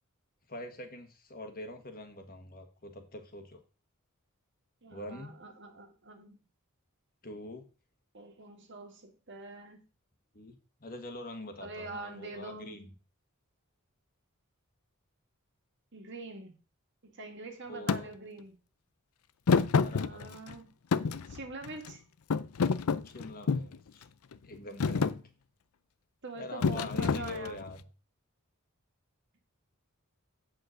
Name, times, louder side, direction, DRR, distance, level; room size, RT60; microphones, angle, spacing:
voice 1, 0.5-3.6 4.9-5.3 7.2-7.6 10.3-12.9 17.7-18.1 19.8-20.3 23.0-24.0 24.4-25.1 26.4-27.8, left 1 dB, 45° left, 6 dB, 1.6 m, -44 dB
voice 2, 4.8-6.4 8.1-9.8 11.6-12.8 15.9-16.6 17.0-18.5 19.9-20.7 21.3-22.0 26.2-27.6, right 3 dB, 55° right, 5 dB, 1.9 m, -44 dB
Thump thud, 17.9-18.0 19.5-20.5 20.9-21.9 22.3-23.8 24.3-24.5 24.8-25.2 26.6-27.7, left 5 dB, 85° left, 0.5 m, -28 dB
8.4 x 5.2 x 6.4 m, 0.34 s
head